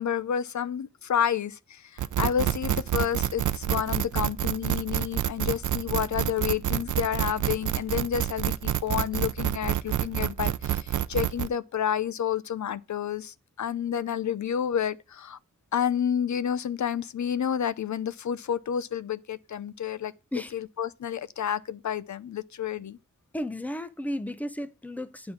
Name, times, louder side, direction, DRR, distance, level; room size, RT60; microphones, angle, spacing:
voice 1, 0.0-15.4 15.7-20.1 20.5-23.0, left 8 dB, 70° left, 0.6 m, -30 dB
sound 1, 2.0-11.5, right 11 dB, 80° right, 0.5 m, -28 dB
voice 2, 23.3-25.3, left 1 dB, 5° left, 0.6 m, -33 dB
9.6 x 3.9 x 7.1 m
wide cardioid pair, 150°, 30 cm